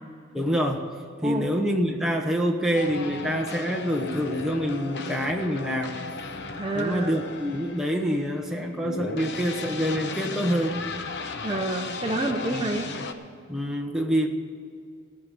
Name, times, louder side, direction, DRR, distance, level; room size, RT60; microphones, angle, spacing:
voice 1, 0.3-0.9 1.2-6.0 6.7-10.8 12.5-12.7 13.5-14.3, equal, ahead, 1 dB, 1.1 m, -26 dB
sound 1, 2.7-13.1, left 3 dB, 55° left, 0.9 m, -36 dB
voice 2, 6.6-7.1 11.4-12.9, right 2 dB, 25° right, 2 dB, 0.7 m, -28 dB
17.0 x 5.9 x 9.9 m, 2.3 s
head